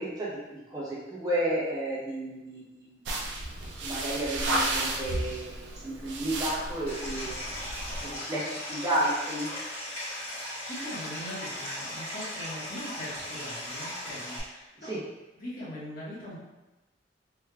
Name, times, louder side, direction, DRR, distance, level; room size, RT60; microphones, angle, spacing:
voice 1, 0.0-3.0 3.8-7.5 8.0-9.5 14.8-15.0, right 1 dB, 20° right, -8 dB, 1.0 m, -32 dB
sound 1, 3.1-8.1, right 1 dB, 75° right, 0.5 m, -33 dB
Stream, 6.9-14.4, left 1 dB, 35° left, 1.5 m, -37 dB
voice 2, 10.6-15.0 15.4-16.4, left 1 dB, 55° left, -8 dB, 1.2 m, -41 dB
3.5 x 3.1 x 2.3 m, 1.0 s
head